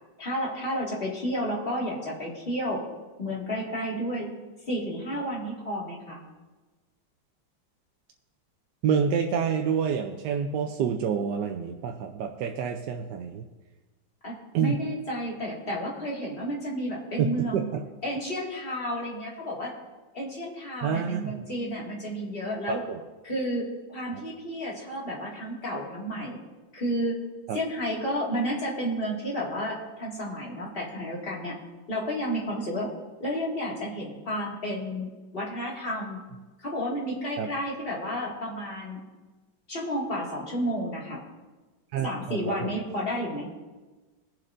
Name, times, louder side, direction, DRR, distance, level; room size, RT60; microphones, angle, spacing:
voice 1, 0.2-2.8 3.2-4.3 4.7-6.2 14.2-17.7 18.0-19.7 20.1-22.8 23.2-26.4 26.7-27.2 27.5-31.5 31.9-32.9 33.2-36.2 36.6-39.0 39.7-41.2 42.0-43.5, equal, 30° left, -3 dB, 2.3 m, -31 dB
voice 2, 8.8-13.4 14.5-14.8 17.4-17.8 20.8-21.4 22.7-23.0 24.1-24.2 27.5-27.6 37.4-37.5 41.9-42.8, right 7 dB, 70° right, 3 dB, 1.2 m, -28 dB
22.0 x 7.4 x 2.6 m, 1.2 s
omnidirectional pair, 2.1 m